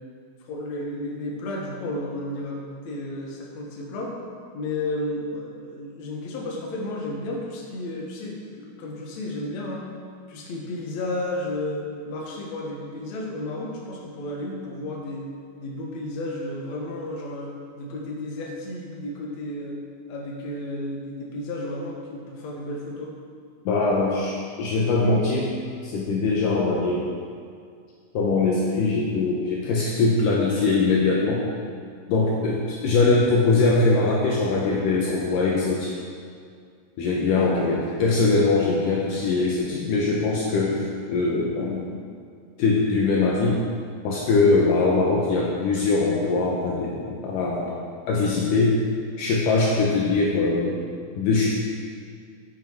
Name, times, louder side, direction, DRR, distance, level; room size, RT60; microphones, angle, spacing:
voice 1, 0.5-4.1 4.5-9.8 10.3-15.3 15.6-19.8 20.1-23.1 37.3-38.0, left 1 dB, 65° left, -2 dB, 1.8 m, -32 dB
voice 2, 23.6-25.5 25.8-27.1 28.1-31.4 32.1-35.9 37.0-41.8 42.6-43.6 44.0-47.8 48.1-48.8 49.2-50.8 51.2-51.5, left 3 dB, 85° left, -3 dB, 1.9 m, -22 dB
10.5 x 8.1 x 4.7 m, 2.2 s
omnidirectional pair, 5.2 m